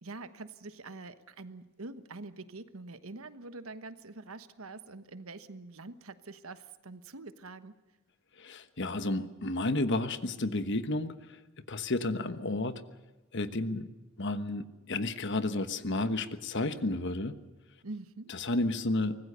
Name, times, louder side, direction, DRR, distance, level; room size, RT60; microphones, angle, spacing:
voice 1, 0.0-7.7 17.8-18.3, right 3 dB, 80° right, 12 dB, 1.2 m, -45 dB
voice 2, 8.4-11.4 11.7-12.8 13.3-13.9 14.2-17.4 18.3-19.2, left 2 dB, 55° left, 11 dB, 1.2 m, -31 dB
24.5 x 19.5 x 6.8 m, 1.1 s
head